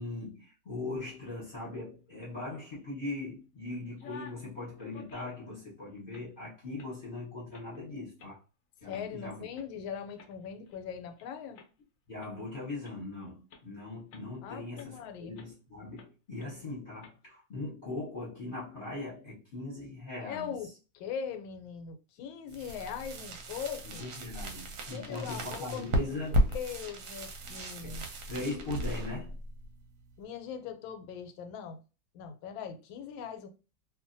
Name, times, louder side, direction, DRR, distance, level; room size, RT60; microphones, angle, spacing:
voice 1, 0.0-8.4 8.8-9.5 12.1-20.5 23.8-26.5 27.8-29.4, left 2 dB, 35° left, 1.0 m, -40 dB
sound 1, 3.8-4.5 4.8-5.5 6.0-6.3 6.8-6.9 7.5-7.8 8.2-8.3 8.9-9.0 9.5-9.7 10.2-11.2 11.6-11.7 12.2-12.3 12.8-13.0 13.5-13.6 14.1-14.4 14.8-14.9 15.4-15.5 16.0-16.1 16.4-16.5 17.0-17.1, left 5 dB, 70° left, 0.8 m, -52 dB
voice 2, 8.9-11.6 14.4-15.4 20.2-24.0 24.9-26.2 26.5-28.0 30.2-31.8 32.1-33.5, left 7 dB, 85° left, 1.4 m, -40 dB
sound 2, 22.5-30.2, right 1 dB, 65° right, 1.1 m, -35 dB
2.7 x 2.6 x 2.5 m
omnidirectional pair, 2.1 m